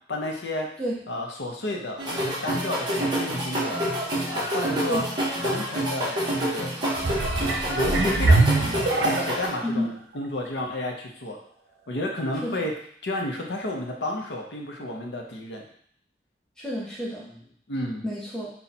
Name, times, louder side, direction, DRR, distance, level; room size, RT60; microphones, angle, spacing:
voice 1, 0.1-0.7 1.1-3.8 4.3-5.0 5.4-6.7 7.2-11.4 11.9-12.7 13.0-15.6 17.7-18.1, left 1 dB, 85° left, 1 dB, 0.8 m, -32 dB
sound 1, 2.0-9.5, right 1 dB, 25° right, 1.0 m, -28 dB
sound 2, 7.0-9.6 10.2-10.3, right 2 dB, 65° right, 0.6 m, -23 dB
voice 2, 16.6-17.4 18.0-18.5, equal, 5° left, -6 dB, 0.6 m, -29 dB
4.2 x 2.3 x 4.1 m, 0.63 s
head